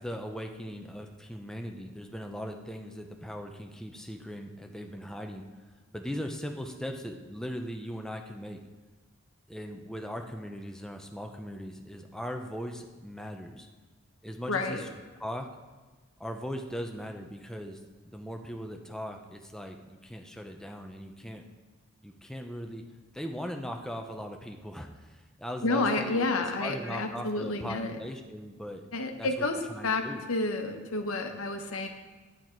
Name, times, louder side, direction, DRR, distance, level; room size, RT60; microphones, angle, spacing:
voice 1, 0.0-5.4 5.9-8.6 9.5-13.7 14.2-14.9 15.2-15.5 16.2-17.8 18.0-21.4 22.0-22.8 23.1-26.3 26.6-28.8 29.2-29.3 29.7-30.2, equal, 5° left, 3 dB, 0.6 m, -39 dB
voice 2, 14.5-14.9 25.6-28.0 28.9-30.0 30.3-31.9, left 2 dB, 70° left, 5 dB, 1.0 m, -30 dB
9.7 x 7.9 x 4.4 m, 1.3 s
head